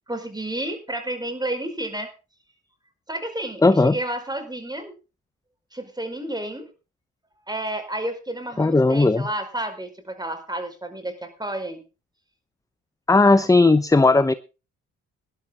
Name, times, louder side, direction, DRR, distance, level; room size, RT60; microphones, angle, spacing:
voice 1, 0.1-2.1 3.1-4.9 5.7-6.7 7.5-11.8, right 1 dB, 15° right, 7 dB, 5.0 m, -31 dB
voice 2, 3.6-4.0 8.6-9.2 13.1-14.3, left 3 dB, 10° left, 15 dB, 0.7 m, -16 dB
19.0 x 11.5 x 3.8 m, 0.32 s
supercardioid pair, 50°, 31 cm